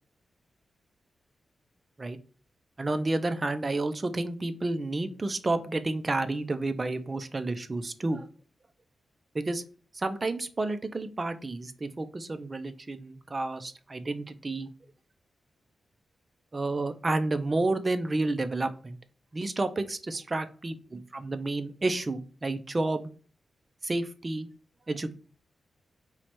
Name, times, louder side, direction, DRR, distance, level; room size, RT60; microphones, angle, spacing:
voice 1, 2.8-8.3 9.3-9.6 9.9-14.7 16.5-19.0 19.3-23.1 23.8-24.5 24.9-25.1, right 2 dB, 25° right, 9 dB, 0.4 m, -30 dB
4.4 x 2.1 x 4.2 m, 0.39 s
wide cardioid pair, 155°, 0 cm